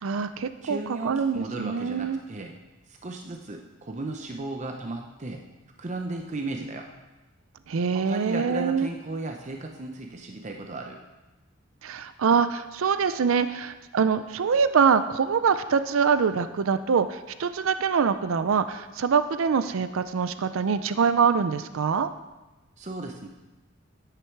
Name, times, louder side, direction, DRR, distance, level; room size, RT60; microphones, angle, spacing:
voice 1, 0.0-2.2 7.7-8.9 11.8-22.1, right 6 dB, 80° right, 12 dB, 0.4 m, -24 dB
voice 2, 0.6-2.6 2.9-5.4 5.8-6.9 7.9-11.0 22.8-23.3, right 2 dB, 35° right, 3 dB, 0.6 m, -35 dB
9.9 x 9.2 x 4.6 m, 1.1 s
head